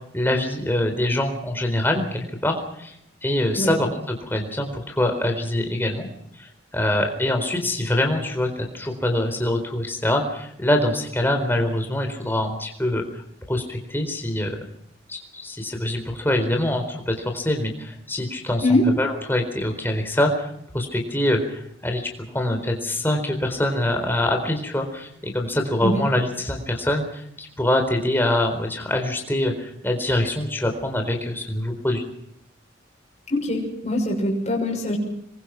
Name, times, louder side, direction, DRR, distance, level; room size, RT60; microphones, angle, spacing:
voice 1, 0.1-3.0 3.2-6.1 6.4-13.2 13.5-14.6 15.1-32.0, left 1 dB, 10° left, 3 dB, 4.1 m, -24 dB
voice 2, 33.3-35.0, left 1 dB, 35° left, -1 dB, 6.4 m, -22 dB
26.5 x 22.5 x 5.9 m, 0.72 s
head